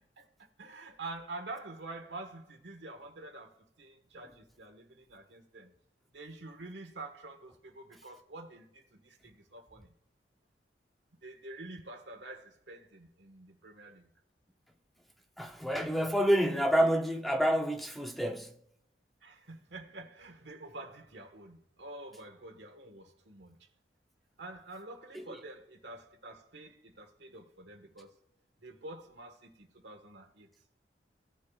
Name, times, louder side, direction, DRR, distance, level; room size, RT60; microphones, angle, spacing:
voice 1, 0.6-5.7 6.1-9.9 11.2-14.1 19.2-23.6 24.4-28.1 28.6-30.5, right 2 dB, 85° right, 1.5 m, -47 dB
voice 2, 15.4-18.5 25.1-25.2, equal, ahead, 0.7 m, -28 dB
17.0 x 6.7 x 2.4 m
head